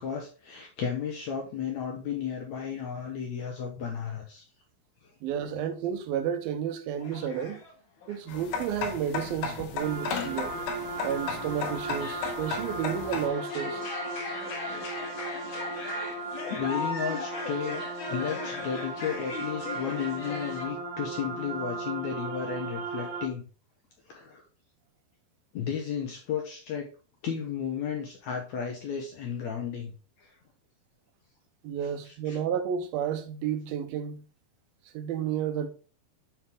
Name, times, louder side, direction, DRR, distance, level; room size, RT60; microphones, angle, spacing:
voice 1, 0.0-4.4 16.5-23.4 24.1-24.4 25.5-26.9 27.2-29.9 30.2-30.4 32.0-32.4, left 7 dB, 70° left, 1.8 m, -33 dB
voice 2, 5.2-7.6 8.1-10.6 11.0-13.8 31.6-34.2 34.9-35.7, right 8 dB, 80° right, 2.6 m, -31 dB
sound 1, 7.0-7.7 8.0-8.4 9.7-20.7, left 4 dB, 50° left, 1.7 m, -39 dB
sound 2, 8.3-13.3, left 5 dB, 85° left, 3.1 m, -35 dB
sound 3, 9.8-23.3, right 3 dB, 65° right, 2.4 m, -37 dB
7.8 x 4.4 x 3.5 m
omnidirectional pair, 4.4 m